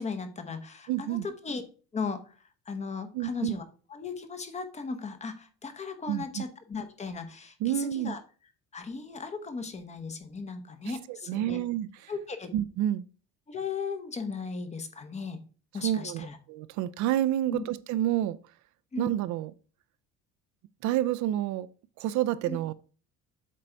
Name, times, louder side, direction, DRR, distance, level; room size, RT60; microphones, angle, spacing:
voice 1, 0.0-1.6 1.9-2.4 2.7-3.6 3.9-8.2 8.7-11.6 12.1-12.5 13.5-15.4 15.7-16.4 17.5-17.6 18.9-19.1 22.5-22.6, left 4 dB, 20° left, 0.9 m, -37 dB
voice 2, 0.9-1.2 3.1-3.6 6.1-6.4 7.6-8.1 10.8-11.9 12.5-13.1 15.8-18.4 19.0-19.5 20.8-21.7 22.0-22.7, right 12 dB, 65° right, 0.5 m, -29 dB
7.6 x 3.9 x 4.5 m
cardioid pair, 150°, 32 cm